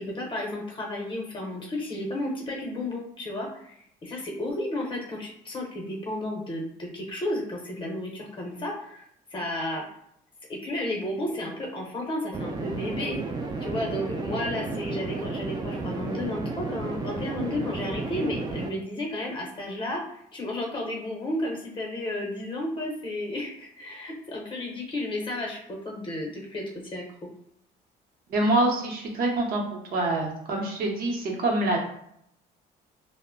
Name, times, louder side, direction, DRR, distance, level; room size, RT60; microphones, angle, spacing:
voice 1, 0.0-9.8 10.5-13.2 13.6-27.3, left 1 dB, 30° left, -1 dB, 0.8 m, -33 dB
sound 1, 12.3-18.7, right 3 dB, 25° right, 0.4 m, -32 dB
voice 2, 28.3-29.6 29.9-31.8, right 2 dB, 60° right, 0 dB, 0.7 m, -25 dB
2.1 x 2.0 x 3.6 m, 0.72 s
cardioid pair, 110°, 17 cm